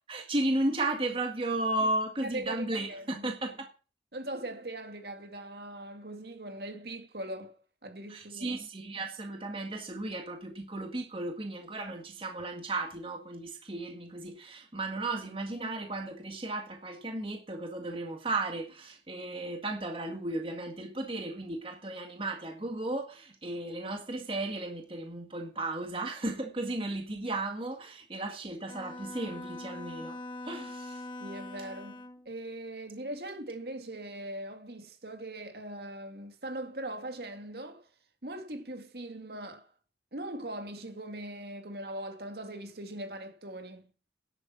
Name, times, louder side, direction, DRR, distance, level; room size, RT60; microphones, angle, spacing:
voice 1, 0.1-3.7 8.1-31.0, right 2 dB, 30° right, 1.8 m, -34 dB
voice 2, 2.2-3.3 4.1-7.5 7.8-8.6 31.2-37.9 38.2-39.7 40.1-43.9, right 1 dB, 60° right, 2.2 m, -40 dB
Bowed string instrument, 28.7-32.3, left 2 dB, 25° left, 1.4 m, -42 dB
10.5 x 8.7 x 6.2 m
head